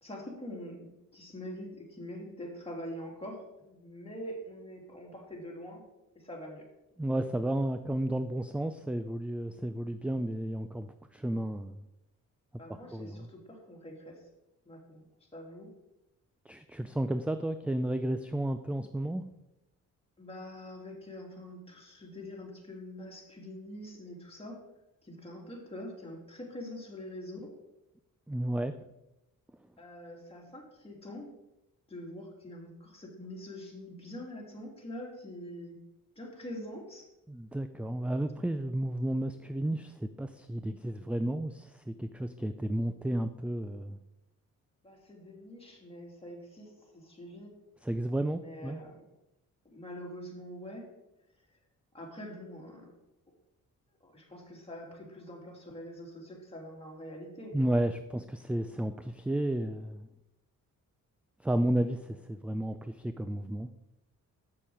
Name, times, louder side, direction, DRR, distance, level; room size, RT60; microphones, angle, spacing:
voice 1, 0.0-5.8 6.1-6.6 12.6-14.2 14.6-15.0 15.3-15.7 20.2-24.6 25.0-27.5 29.8-31.3 31.9-35.8 36.2-37.1 44.8-47.5 48.4-49.0 49.6-50.9 51.9-52.9 54.0-57.8, left 1 dB, 15° left, -1 dB, 2.6 m, -44 dB
voice 2, 7.0-11.8 12.9-13.3 16.5-19.2 28.3-28.7 37.3-44.0 47.8-48.8 57.5-60.1 61.4-63.7, right 1 dB, 5° right, 10 dB, 0.3 m, -32 dB
7.5 x 6.8 x 4.7 m, 0.91 s
cardioid pair, 90°, 33 cm